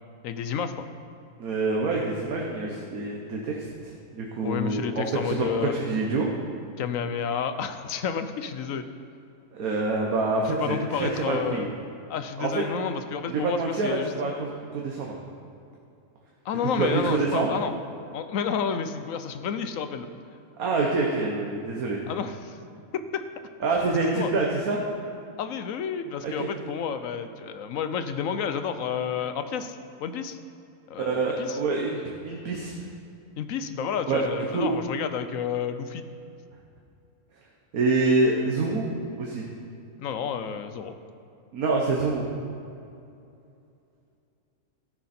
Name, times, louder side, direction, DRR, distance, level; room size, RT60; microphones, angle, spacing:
voice 1, 0.2-0.8 4.4-5.7 6.8-8.9 10.5-11.7 12.1-14.1 16.4-17.7 18.1-20.1 22.1-22.6 22.9-23.2 24.1-24.3 25.4-30.4 30.9-31.6 33.4-36.0 40.0-40.9, left 7 dB, 70° left, 10 dB, 1.0 m, -30 dB
voice 2, 1.4-3.7 4.1-6.3 9.5-11.7 12.4-12.6 13.3-15.1 16.8-17.6 20.6-22.0 23.6-24.8 26.2-26.3 31.0-32.0 32.2-32.7 34.1-34.2 34.5-34.7 37.7-38.8 39.2-39.4 41.5-42.2, right 3 dB, 75° right, -1 dB, 1.6 m, -26 dB
13.5 x 10.5 x 4.3 m, 2.5 s
omnidirectional pair, 1.5 m